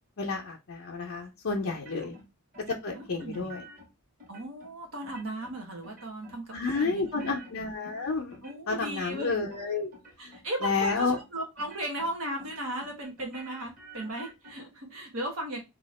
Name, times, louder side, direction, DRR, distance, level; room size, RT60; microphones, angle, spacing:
voice 1, 0.2-2.2 2.7-3.6 6.5-8.4 8.7-9.9 10.2-10.3 10.6-11.2, left 4 dB, 60° left, -1 dB, 0.6 m, -30 dB
sound 1, 1.7-2.3 2.5-3.9 4.2-4.7 5.0-5.6 5.8-6.4 6.7-8.9 9.1-9.6 9.9-10.4 10.7-11.2 11.6-12.1 12.4-14.5, right 2 dB, 40° right, 1.4 m, -50 dB
voice 2, 2.9-3.5 4.3-7.3 8.4-9.3 10.2-15.6, right 1 dB, 65° right, 1 dB, 0.9 m, -36 dB
2.8 x 2.4 x 4.1 m, 0.24 s
head